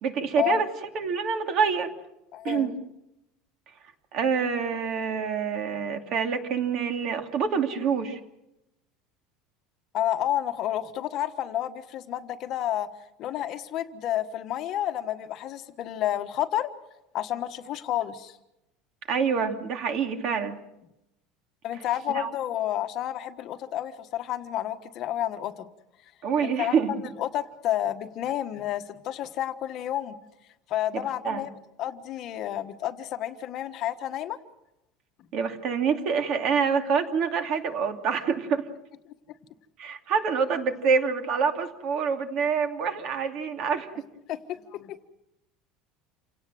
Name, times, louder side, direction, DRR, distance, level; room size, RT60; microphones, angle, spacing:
voice 1, 0.0-0.7 0.9-1.9 2.4-2.8 4.1-8.2 19.1-20.6 22.1-22.3 26.2-26.9 30.9-31.5 35.3-38.7 39.8-43.9, right 6 dB, 40° right, 6 dB, 2.7 m, -26 dB
voice 2, 2.3-2.7 9.9-12.9 13.2-16.7 17.1-18.4 21.6-25.7 26.4-26.8 27.2-30.2 30.7-31.5 31.8-34.4 44.3-45.1, left 12 dB, 40° left, 8 dB, 1.3 m, -30 dB
28.5 x 18.0 x 7.7 m, 0.89 s
cardioid pair, 165°, 0 cm